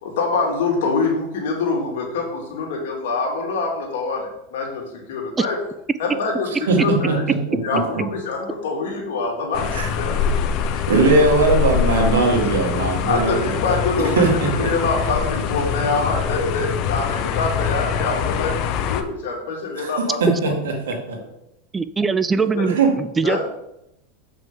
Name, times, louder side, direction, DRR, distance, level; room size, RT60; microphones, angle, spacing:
voice 1, 0.0-5.5 6.0-7.2 7.6-9.6 9.9-10.3 10.8-11.1 13.1-20.2 20.4-20.5 22.4-22.7 23.2-23.4, left 3 dB, 75° left, -1 dB, 2.3 m, -25 dB
voice 2, 6.7-8.0 9.7-9.9 10.9-13.5 14.2-14.7 19.8-19.9 20.2-21.2 22.7-22.9, right 3 dB, 90° right, 1 dB, 1.9 m, -20 dB
sound 1, 9.5-19.0, left 7 dB, 50° left, 0.7 m, -24 dB
voice 3, 21.7-23.4, right 4 dB, 15° right, 14 dB, 0.3 m, -21 dB
7.2 x 5.3 x 3.8 m, 0.83 s
supercardioid pair, 120°, 0 cm